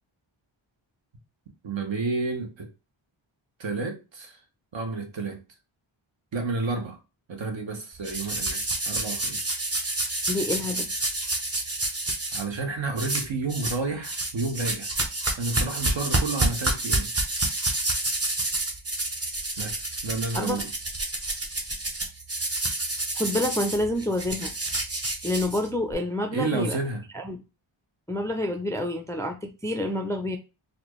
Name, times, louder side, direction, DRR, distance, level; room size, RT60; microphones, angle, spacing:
voice 1, 1.6-2.7 3.6-4.3 4.7-5.4 6.3-7.0 7.3-9.5 12.3-14.9 15.4-17.1 19.6-20.7 26.3-27.1, right 3 dB, 65° right, 1.1 m, -30 dB
sound 1, 8.0-12.4 13.0-13.8 14.0-25.9, right 2 dB, 30° right, 0.9 m, -29 dB
voice 2, 10.3-10.9 20.3-20.6 23.2-24.5 25.2-26.8 27.1-27.4 28.1-30.4, left 1 dB, 5° left, 0.3 m, -28 dB
4.2 x 2.6 x 3.0 m
wide cardioid pair, 105°, 48 cm